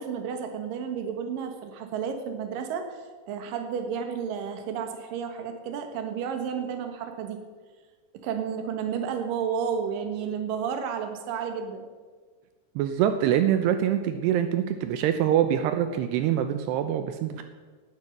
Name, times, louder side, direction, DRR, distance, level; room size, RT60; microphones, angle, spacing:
voice 1, 0.0-7.4 8.1-11.9 17.3-17.4, right 7 dB, 60° right, 6 dB, 3.0 m, -32 dB
voice 2, 12.8-17.4, right 10 dB, 80° right, 8 dB, 2.9 m, -24 dB
18.5 x 9.6 x 6.7 m, 1.4 s
omnidirectional pair, 4.8 m